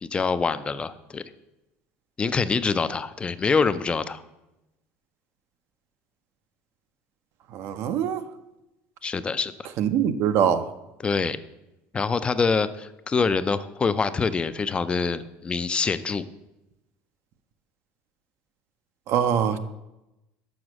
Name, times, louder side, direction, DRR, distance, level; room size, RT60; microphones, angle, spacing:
voice 1, 0.0-1.2 2.2-4.2 9.0-9.7 11.0-11.4 11.9-16.3, left 5 dB, 20° left, 13 dB, 0.4 m, -25 dB
voice 2, 7.5-8.2 9.8-10.7 19.1-19.6, right 8 dB, 60° right, 11 dB, 0.5 m, -23 dB
6.3 x 4.9 x 6.1 m, 0.96 s
cardioid pair, 120°, 5 cm